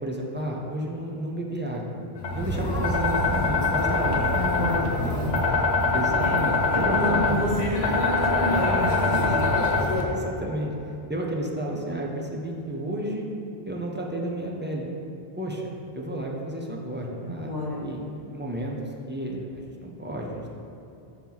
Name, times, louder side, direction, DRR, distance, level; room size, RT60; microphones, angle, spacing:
voice 1, 0.0-1.9 2.3-4.3 5.0-5.3 5.9-7.4 9.2-9.4 10.1-10.7 11.1-13.2 13.7-14.9 15.4-17.5 17.8-18.0 18.3-18.8 19.1-20.5, right 1 dB, 15° right, -2 dB, 0.4 m, -31 dB
sound 1, 2.2-10.0, left 3 dB, 90° left, 1.1 m, -24 dB
voice 2, 4.3-5.4 6.2-6.4 6.7-9.4 17.2-18.1, equal, 60° right, -9 dB, 1.9 m, -29 dB
6.1 x 3.0 x 5.4 m, 2.8 s
omnidirectional pair, 1.1 m